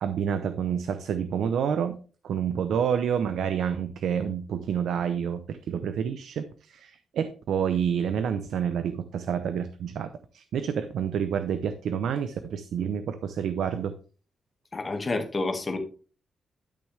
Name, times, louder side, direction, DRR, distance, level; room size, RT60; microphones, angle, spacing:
voice 1, 0.0-2.0 2.2-13.9, right 8 dB, 80° right, 11 dB, 0.7 m, -28 dB
voice 2, 14.7-15.8, left 3 dB, 25° left, 4 dB, 1.9 m, -29 dB
12.0 x 6.4 x 3.4 m, 0.37 s
wide cardioid pair, 145°, 0 cm